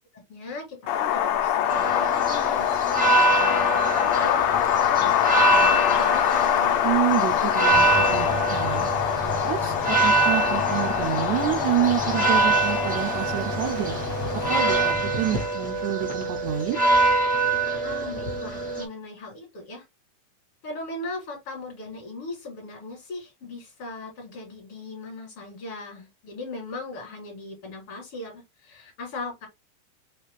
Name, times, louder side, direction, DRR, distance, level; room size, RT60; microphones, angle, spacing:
voice 1, 0.3-2.8 3.1-4.7 4.9-6.8 17.8-19.8 20.6-29.5, left 2 dB, 50° left, 2.2 m, -38 dB
Wind, 0.9-14.9, left 10 dB, 75° left, 1.5 m, -24 dB
sound 1, 1.7-18.8, right 3 dB, 10° right, 0.5 m, -25 dB
voice 2, 6.8-8.9 9.4-14.0 14.5-16.8, right 13 dB, 80° right, 1.7 m, -28 dB
sound 2, 7.7-15.5, right 1 dB, 60° right, 1.3 m, -35 dB
5.7 x 2.4 x 3.5 m
omnidirectional pair, 3.8 m